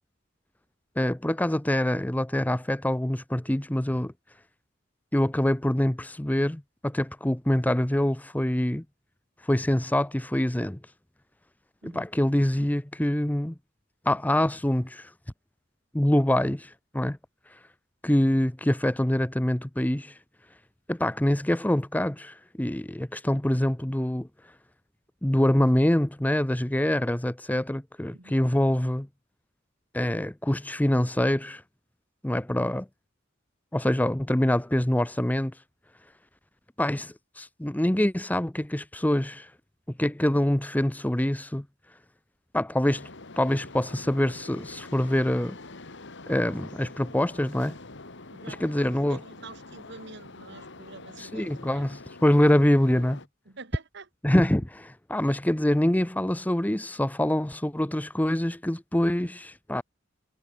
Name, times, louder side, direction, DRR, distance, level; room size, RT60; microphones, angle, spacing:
voice 1, 1.0-4.1 5.1-8.8 9.4-10.8 11.8-13.5 14.1-15.1 15.9-17.2 18.0-20.2 20.9-24.3 25.2-29.1 29.9-31.6 32.2-32.9 33.7-35.5 36.8-39.5 40.0-41.6 42.5-43.1 43.4-45.6 46.3-47.8 48.5-49.2 51.2-53.2 54.2-59.8, left 1 dB, 10° left, 0.7 m, -25 dB
sound 1, 42.9-53.3, left 3 dB, 60° left, 2.5 m, -45 dB
voice 2, 48.3-51.8 53.5-54.1, right 3 dB, 60° right, 2.5 m, -46 dB
head